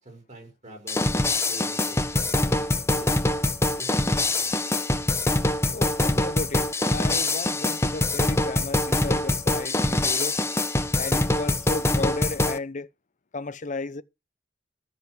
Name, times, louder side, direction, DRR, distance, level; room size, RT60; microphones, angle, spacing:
voice 1, 0.0-1.1 1.5-3.1 3.8-4.6, right 1 dB, 40° right, 5.3 m, -46 dB
sound 1, 0.9-12.6, left 2 dB, 15° left, 0.9 m, -24 dB
voice 2, 5.7-10.4 11.0-12.9 13.3-14.0, left 3 dB, 40° left, 0.8 m, -34 dB
13.5 x 6.6 x 7.8 m
head